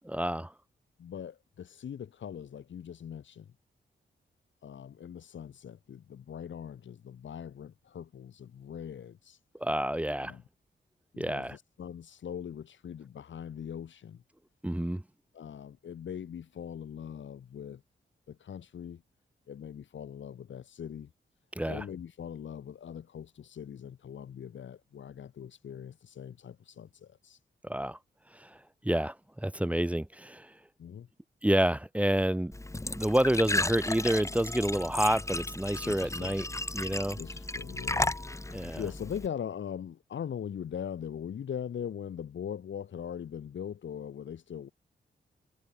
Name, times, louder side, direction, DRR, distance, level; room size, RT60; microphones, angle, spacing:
voice 1, 0.0-0.5 9.6-10.3 11.2-11.6 14.6-15.0 21.6-21.8 27.6-28.0 28.3-28.6 28.8-30.5 31.4-32.5 32.9-36.4 36.7-37.2 38.5-38.8, right 1 dB, 5° right, 1.0 m, -29 dB
voice 2, 1.0-3.5 4.6-9.4 10.1-10.4 11.1-14.2 15.3-17.8 18.3-19.0 19.5-21.1 21.7-27.4 30.8-31.1 35.8-36.3 37.2-44.7, left 8 dB, 80° left, 7.2 m, -41 dB
Glass / Trickle dribble / Fill (with liquid), 32.5-39.3, left 2 dB, 15° left, 1.3 m, -34 dB
cardioid pair, 60°, 19 cm